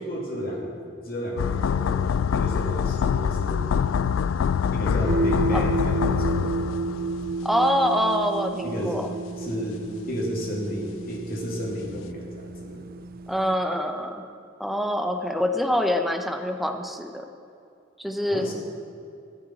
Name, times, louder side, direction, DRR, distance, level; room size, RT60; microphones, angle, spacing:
voice 1, 0.0-3.7 4.7-6.5 8.6-9.0 9.4-9.8 10.1-12.9 18.3-18.5, equal, 50° left, -1 dB, 2.4 m, -32 dB
sound 1, 1.4-7.5 7.7-7.8, left 7 dB, 75° left, 0.3 m, -25 dB
sound 2, 5.0-13.6, right 3 dB, 50° right, 0.6 m, -31 dB
voice 2, 7.4-9.1 13.3-14.2 14.6-17.2 18.0-18.5, equal, ahead, 6 dB, 0.7 m, -25 dB
12.0 x 6.6 x 9.5 m, 2.5 s
head